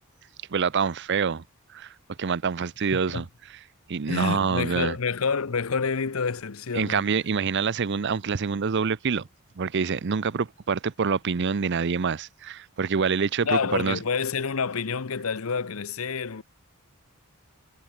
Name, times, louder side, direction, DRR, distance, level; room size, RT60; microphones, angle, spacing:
voice 1, 0.5-1.4 1.7-1.9 2.2-3.3 3.9-4.9 6.7-9.3 9.6-14.0, right 5 dB, 55° right, 0.6 m, -26 dB
voice 2, 2.9-3.2 4.1-7.1 13.4-16.4, left 5 dB, 70° left, 0.8 m, -28 dB
head